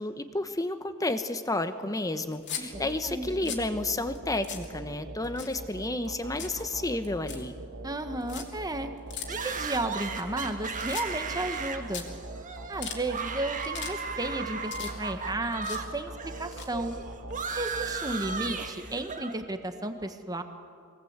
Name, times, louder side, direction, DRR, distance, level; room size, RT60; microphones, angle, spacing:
voice 1, 0.0-7.6, left 2 dB, 15° left, 10 dB, 1.1 m, -31 dB
sound 1, 2.3-2.7 3.2-3.7 4.2-4.3 4.4-4.7 5.2-5.8 6.1-6.6 7.0-7.4 8.2-8.4 9.1-9.3 9.9-10.5 10.8-11.3 11.7-11.8 11.9-12.0 12.6-13.0 13.5-13.9 14.2-15.2 15.5-15.8 16.4-17.3, left 8 dB, 55° left, 2.6 m, -39 dB
voice 2, 2.6-3.5 7.8-8.9 9.3-12.1 12.7-16.1 16.4-17.0 17.5-20.4, right 2 dB, 20° right, 7 dB, 1.4 m, -33 dB
sound 2, 2.7-19.3, right 1 dB, 65° right, 1.6 m, -43 dB
sound 3, 9.3-15.9 16.1-19.3, right 5 dB, 40° right, 1.6 m, -36 dB
23.5 x 18.5 x 8.2 m, 2.2 s
head